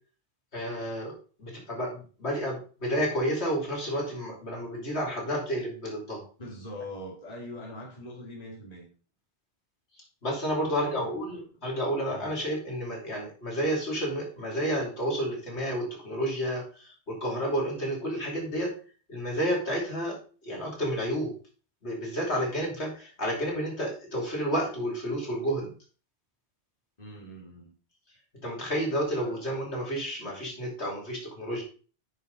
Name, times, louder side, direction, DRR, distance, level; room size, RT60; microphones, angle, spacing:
voice 1, 0.5-1.1 1.4-6.2 10.2-18.7 19.1-20.2 20.4-21.3 21.8-25.7 28.4-31.6, equal, 70° left, -2 dB, 3.3 m, -30 dB
voice 2, 6.4-8.9 10.6-11.5 12.1-12.4 27.0-27.7 29.2-29.4, left 1 dB, 35° left, -3 dB, 2.6 m, -42 dB
9.3 x 5.6 x 3.9 m, 0.37 s
omnidirectional pair, 1.2 m